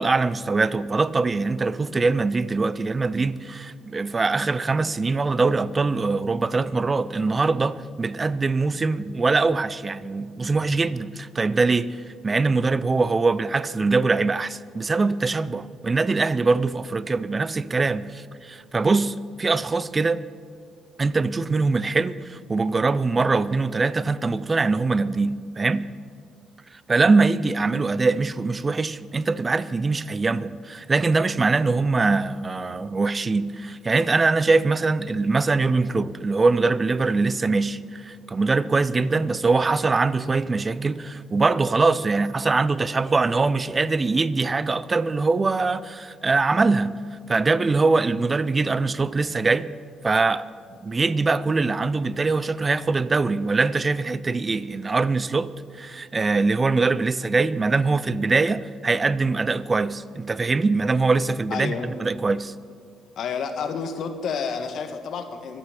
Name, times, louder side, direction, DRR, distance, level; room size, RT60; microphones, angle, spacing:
voice 1, 0.0-12.0 12.2-20.2 21.0-25.9 26.7-49.7 50.0-50.5 50.8-61.7 62.0-62.5, right 3 dB, 30° right, 0.6 m, -23 dB
voice 2, 61.5-61.9 63.2-65.6, left 6 dB, 70° left, 1.5 m, -30 dB
24.5 x 9.0 x 6.0 m
cardioid pair, 90°, 0 cm